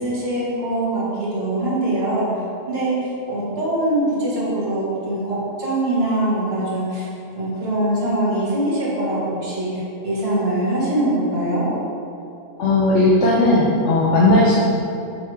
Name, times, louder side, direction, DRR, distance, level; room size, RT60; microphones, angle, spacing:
voice 1, 0.0-2.3 2.7-2.9 3.3-7.1 7.4-11.7, right 1 dB, 50° right, -7 dB, 2.1 m, -23 dB
voice 2, 12.6-14.5, left 2 dB, 70° left, -5 dB, 1.2 m, -16 dB
8.1 x 6.8 x 3.4 m, 2.7 s
omnidirectional pair, 1.3 m